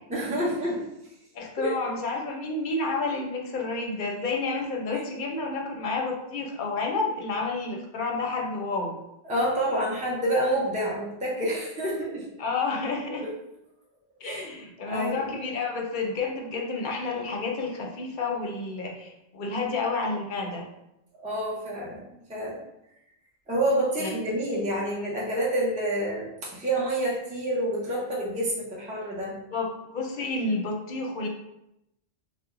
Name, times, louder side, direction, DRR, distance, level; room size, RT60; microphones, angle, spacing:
voice 1, 0.1-0.9 1.6-1.7 9.3-12.3 13.1-13.3 14.2-14.4 14.8-15.3 21.2-22.6 23.5-29.3, right 1 dB, 10° right, -6 dB, 0.6 m, -28 dB
voice 2, 1.3-9.0 12.4-13.2 14.2-20.7 24.0-24.1 29.5-31.3, left 3 dB, 55° left, 1 dB, 0.7 m, -30 dB
2.9 x 2.1 x 3.7 m, 0.84 s
omnidirectional pair, 1.1 m